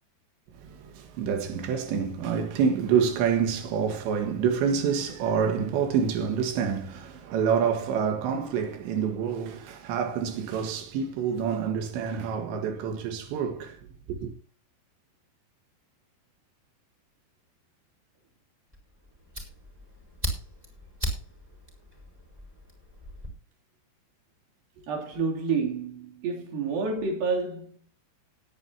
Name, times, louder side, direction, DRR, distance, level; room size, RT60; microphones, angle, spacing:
voice 1, 0.6-13.8 14.1-14.3, right 7 dB, 90° right, 3.8 m, -27 dB
Fire, 18.7-23.3, equal, 10° right, 4.2 m, -37 dB
voice 2, 24.8-27.8, right 4 dB, 60° right, 4.5 m, -29 dB
19.0 x 10.0 x 2.8 m
omnidirectional pair, 5.0 m